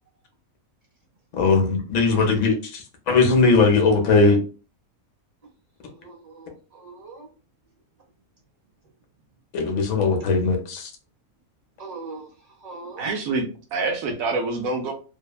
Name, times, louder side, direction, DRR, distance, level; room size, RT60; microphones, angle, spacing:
voice 1, 1.4-4.4 9.5-10.9, left 4 dB, 65° left, 3 dB, 1.0 m, -19 dB
voice 2, 5.9-7.3 11.8-12.3 12.6-13.2, right 3 dB, 35° right, -2 dB, 0.7 m, -40 dB
voice 3, 13.0-14.9, right 3 dB, 75° right, 4 dB, 1.0 m, -26 dB
2.8 x 2.1 x 2.3 m, 0.36 s
omnidirectional pair, 1.5 m